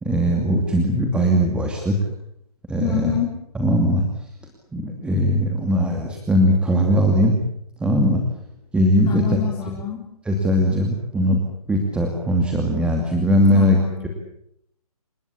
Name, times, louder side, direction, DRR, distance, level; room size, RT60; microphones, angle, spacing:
voice 1, 0.0-2.0 2.7-3.1 3.5-4.0 4.7-7.4 7.8-8.2 8.7-9.4 10.3-11.4 11.7-13.8, equal, 5° right, 1 dB, 2.5 m, -19 dB
voice 2, 2.8-3.3 9.1-10.1 13.5-14.1, left 11 dB, 20° left, -2 dB, 4.1 m, -27 dB
28.5 x 17.0 x 8.6 m, 0.78 s
hypercardioid pair, 145°, 20 cm